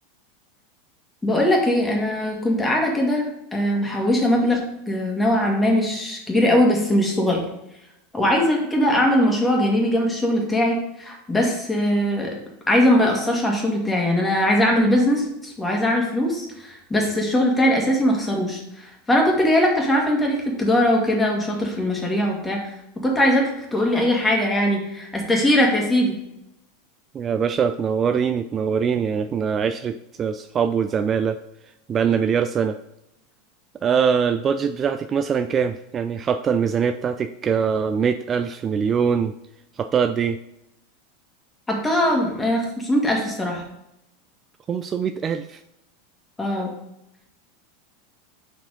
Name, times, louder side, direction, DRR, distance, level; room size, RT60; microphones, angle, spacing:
voice 1, 1.2-4.6 4.9-7.4 8.1-12.3 12.7-22.7 23.0-26.1 41.7-43.6 46.4-46.7, left 1 dB, 10° left, 0 dB, 1.9 m, -21 dB
voice 2, 27.1-31.4 31.9-32.8 33.8-39.3 39.8-40.4 44.7-45.6, right 7 dB, 30° right, 9 dB, 0.3 m, -23 dB
5.6 x 4.5 x 5.1 m, 0.84 s
figure-of-eight pair, 85°, 0 cm